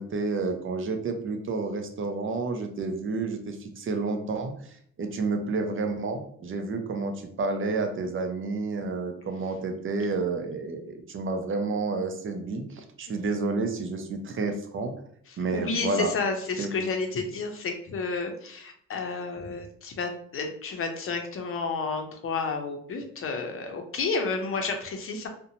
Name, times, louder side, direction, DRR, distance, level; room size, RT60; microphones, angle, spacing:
voice 1, 0.0-14.9 15.4-16.1 16.6-16.7, right 3 dB, 45° right, 5 dB, 0.5 m, -30 dB
voice 2, 15.3-25.3, left 4 dB, 45° left, 4 dB, 0.6 m, -31 dB
2.6 x 2.1 x 2.7 m, 0.64 s
cardioid pair, 90°, 30 cm